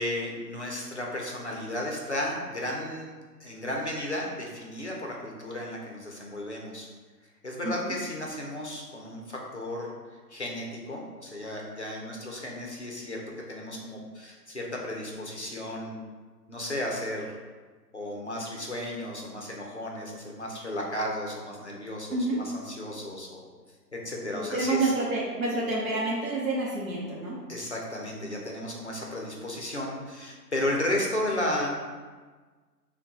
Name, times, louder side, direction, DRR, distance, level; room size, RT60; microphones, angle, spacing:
voice 1, 0.0-3.1 3.4-6.9 7.4-9.9 10.3-13.2 13.5-16.0 16.5-17.4 17.9-23.4 23.9-24.9 27.5-31.7, left 1 dB, 45° left, -1 dB, 0.6 m, -34 dB
voice 2, 24.3-27.3, right 2 dB, 55° right, -6 dB, 0.8 m, -28 dB
5.7 x 2.2 x 2.7 m, 1.4 s
figure-of-eight pair, 175°, 50 cm